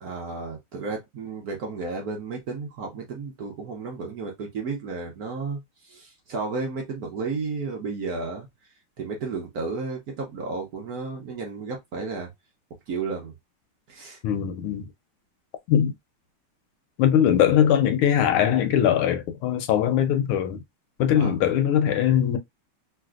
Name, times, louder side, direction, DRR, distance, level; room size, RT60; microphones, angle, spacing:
voice 1, 0.0-8.5 9.0-12.3 12.9-13.3 13.9-14.2 21.2-21.4, right 4 dB, 65° right, 1.0 m, -33 dB
voice 2, 14.2-14.9 15.7-15.9 17.0-20.6 21.0-22.4, left 9 dB, 80° left, 1.4 m, -21 dB
3.2 x 2.7 x 2.4 m
omnidirectional pair, 2.3 m